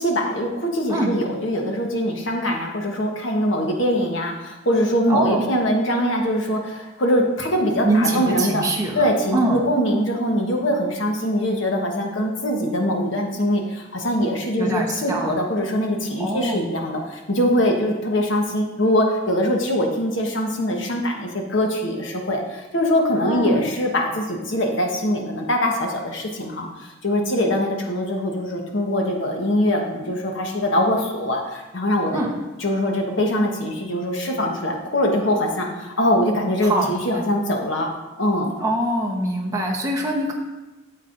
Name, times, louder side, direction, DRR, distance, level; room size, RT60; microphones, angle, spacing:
voice 1, 0.0-8.7 8.9-32.2 32.6-37.9 38.2-38.5, equal, 70° left, 1 dB, 1.2 m, -22 dB
voice 2, 5.1-5.5 7.8-9.1 9.3-9.6 14.6-15.4 16.2-16.7 23.3-23.6 32.1-32.3 36.6-37.2 38.6-40.3, right 1 dB, 15° right, -1 dB, 1.0 m, -23 dB
8.9 x 7.5 x 2.6 m, 1.1 s
head